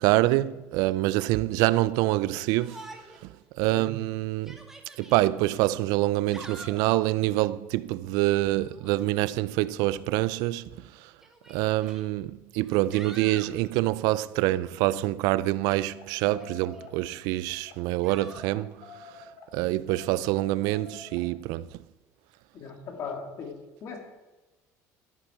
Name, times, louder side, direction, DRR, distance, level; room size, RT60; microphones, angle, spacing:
voice 1, 0.0-2.9 3.2-3.3 3.5-4.6 5.0-10.7 11.0-11.1 11.5-19.2 19.5-21.8, right 17 dB, 80° right, 0.4 m, -26 dB
Yell, 2.6-3.3 3.7-3.8 4.3-5.2 6.1-6.9 8.7-9.1 10.2-10.3 11.2-12.0 12.6-13.5 16.2-16.9 18.0-18.5, right 1 dB, 5° right, 1.4 m, -46 dB
sound 1, 15.8-16.0 16.3-17.0 17.5-17.8 18.2-19.5 19.8-21.2, left 6 dB, 85° left, 2.3 m, -48 dB
voice 2, 22.5-23.5 23.8-24.0, left 5 dB, 50° left, 2.5 m, -38 dB
13.5 x 8.6 x 4.4 m
cardioid pair, 140°, 6 cm